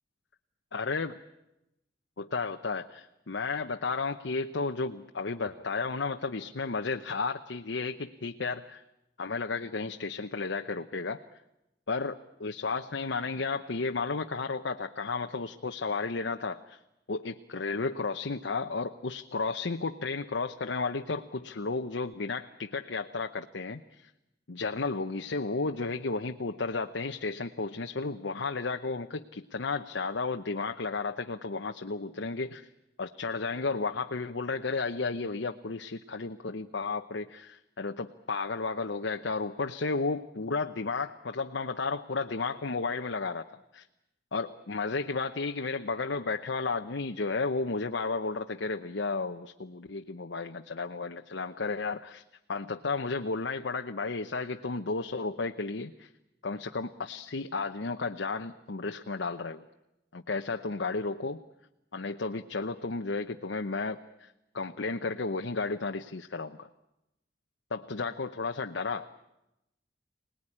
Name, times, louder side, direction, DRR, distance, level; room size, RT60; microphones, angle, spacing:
voice 1, 0.7-1.1 2.2-8.8 9.2-11.2 11.9-16.8 17.1-24.1 24.5-32.7 33.0-43.4 43.7-43.8 44.3-52.2 52.5-56.1 56.4-59.6 60.1-61.4 61.9-66.7 67.7-69.1, left 4 dB, 85° left, 5 dB, 0.9 m, -33 dB
25.5 x 19.5 x 10.0 m, 0.91 s
head